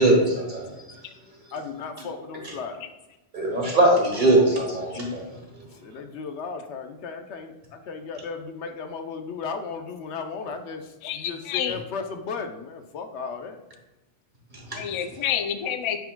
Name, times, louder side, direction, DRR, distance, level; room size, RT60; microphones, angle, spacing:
voice 1, 0.0-1.5 2.4-2.5 3.3-6.0 14.5-14.8, right 1 dB, 45° right, -1 dB, 1.6 m, -23 dB
voice 2, 1.5-2.8 5.8-13.6, left 5 dB, 80° left, 6 dB, 1.0 m, -35 dB
voice 3, 11.0-11.8 14.8-16.0, left 9 dB, 50° left, 7 dB, 0.3 m, -28 dB
9.1 x 4.6 x 2.2 m, 1.1 s
omnidirectional pair, 1.1 m